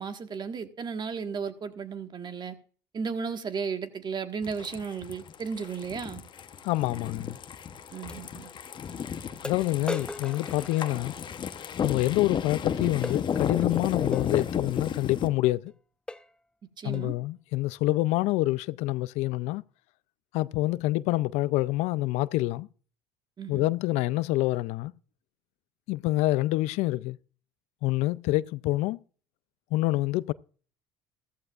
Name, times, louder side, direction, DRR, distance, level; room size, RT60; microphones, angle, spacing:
voice 1, 0.0-2.6 2.9-6.2 7.9-8.5 16.8-17.1 23.4-23.7, right 5 dB, 40° right, 1.6 m, -34 dB
sound 1, 4.4-15.3, left 7 dB, 40° left, 0.9 m, -33 dB
voice 2, 6.6-7.4 9.4-11.1 11.8-15.7 16.8-19.6 20.3-22.7 23.5-24.9 25.9-27.2 27.8-29.0 29.7-30.3, left 18 dB, 75° left, 0.4 m, -27 dB
sound 2, 7.1-7.2 8.1-8.2 8.9-9.0 9.4-11.4 13.0-13.2 14.1-14.3 15.1-15.3 15.7-15.8 16.1-16.4 16.9-17.2, left 1 dB, 10° left, 0.6 m, -39 dB
14.5 x 14.0 x 2.5 m
supercardioid pair, 85°, 12 cm